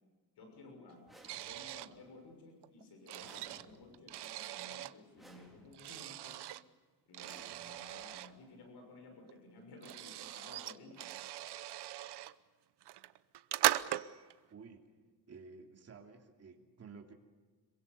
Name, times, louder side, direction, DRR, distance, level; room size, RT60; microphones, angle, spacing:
voice 1, 0.4-1.0 1.4-6.4 7.1-11.1, left 2 dB, 75° left, 3 dB, 6.4 m, -55 dB
sound 1, 1.1-1.9 3.2-4.1 5.2-6.0 7.2-8.1, right 1 dB, ahead, 4.1 m, -60 dB
sound 2, 1.2-1.9 2.6-4.9 5.7-6.6 7.1-8.3 9.3-9.4 9.6-12.3 12.8-14.3, right 13 dB, 80° right, 0.9 m, -39 dB
voice 2, 14.5-14.9 15.3-17.1, right 5 dB, 40° right, 2 dB, 3.0 m, -53 dB
26.5 x 23.5 x 6.9 m, 1.4 s
wide cardioid pair, 165°, 40 cm